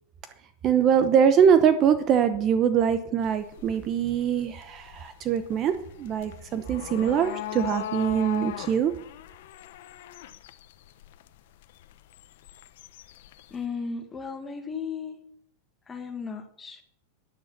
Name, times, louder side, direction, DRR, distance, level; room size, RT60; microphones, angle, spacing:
voice 1, 0.6-5.7 6.0-8.9, right 8 dB, 30° right, 10 dB, 0.9 m, -23 dB
sound 1, 3.2-13.7, left 12 dB, 65° left, 0.9 m, -40 dB
voice 2, 13.5-15.2 15.9-16.8, left 5 dB, 15° left, 5 dB, 1.9 m, -35 dB
11.0 x 10.5 x 5.9 m, 0.65 s
supercardioid pair, 155°, 0 cm